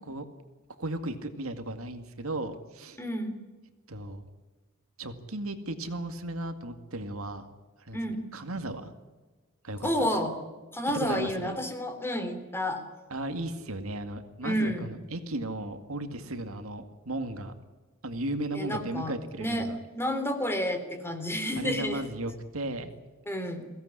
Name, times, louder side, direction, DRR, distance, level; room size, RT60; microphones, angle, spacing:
voice 1, 0.8-3.0 3.9-4.2 5.0-7.5 7.8-8.9 9.6-10.3 10.9-11.6 13.1-17.5 18.0-19.8 21.6-22.9, right 1 dB, 70° right, 8 dB, 2.2 m, -35 dB
voice 2, 3.0-3.4 7.9-8.3 9.8-10.3 10.7-12.8 14.4-14.9 18.5-22.1 23.3-23.7, equal, 10° left, 6 dB, 3.3 m, -30 dB
22.5 x 17.0 x 10.0 m, 1.3 s
head